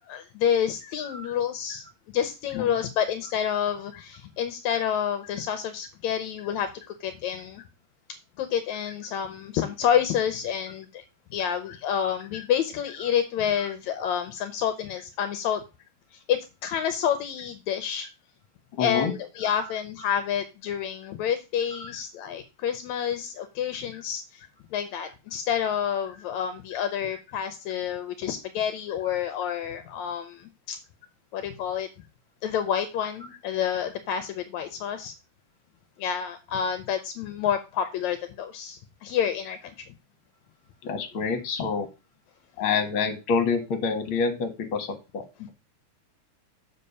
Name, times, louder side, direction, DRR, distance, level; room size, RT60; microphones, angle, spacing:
voice 1, 0.1-1.8 2.1-6.7 7.0-7.6 8.4-11.0 11.3-15.6 16.1-18.1 18.8-24.4 24.7-30.8 31.3-31.9 32.4-35.1 36.0-39.7, left 9 dB, 80° left, 8 dB, 2.0 m, -28 dB
voice 2, 1.0-1.4 2.5-2.7 11.7-11.8 13.6-13.7 18.8-19.1 19.4-19.5 21.7-21.9 40.8-41.9 42.6-44.9 45.1-45.5, left 5 dB, 50° left, 5 dB, 2.1 m, -28 dB
6.6 x 5.1 x 5.4 m, 0.27 s
omnidirectional pair, 3.4 m